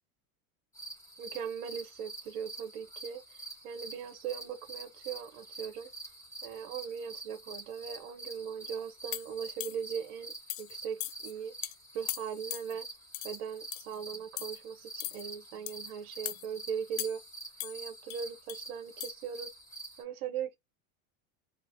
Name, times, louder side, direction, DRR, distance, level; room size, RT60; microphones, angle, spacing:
sound 1, 0.7-20.0, right 2 dB, 5° left, 1.3 m, -47 dB
voice 1, 1.2-5.9 6.4-10.3 10.6-11.5 11.9-12.9 13.2-17.2 17.6-19.6 20.0-20.6, right 7 dB, 85° right, 1.0 m, -39 dB
sound 2, 9.1-10.0 10.5-10.7 11.0-11.3 11.6-11.7 12.1-12.7 13.1-13.4 13.7-14.0 14.4-14.6 15.0-15.2 15.7-15.9 16.3-16.5 17.0-17.3 17.6-18.6 19.0-19.1, left 16 dB, 85° left, 0.6 m, -39 dB
3.2 x 2.5 x 2.7 m
supercardioid pair, 130°, 42 cm